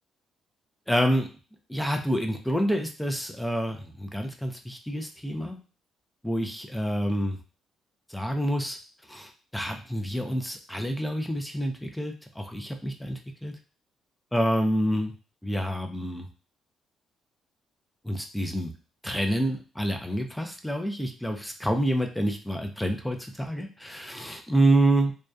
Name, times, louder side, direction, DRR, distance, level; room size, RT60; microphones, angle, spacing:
voice 1, 0.9-1.3 1.7-5.6 6.2-7.4 8.1-8.8 9.1-13.5 14.3-15.1 15.4-16.3 18.0-18.7 19.0-25.1, right 1 dB, 5° left, 4 dB, 0.4 m, -27 dB
2.5 x 2.1 x 2.3 m, 0.35 s
cardioid pair, 90°, 0 cm